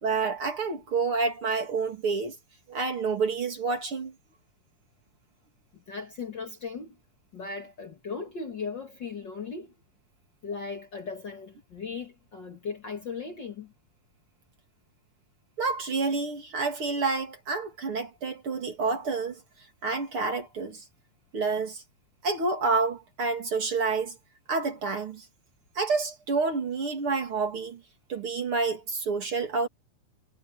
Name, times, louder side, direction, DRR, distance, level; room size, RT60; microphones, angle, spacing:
voice 1, 0.0-2.3 2.7-4.1 15.6-19.4 19.8-20.8 21.3-21.8 22.2-24.1 24.5-25.2 25.7-27.8 28.1-29.7, right 4 dB, 45° right, 3.3 m, -28 dB
voice 2, 5.9-7.0 7.3-9.7 10.4-13.7, left 5 dB, 40° left, 2.1 m, -37 dB
omnidirectional pair, 3.7 m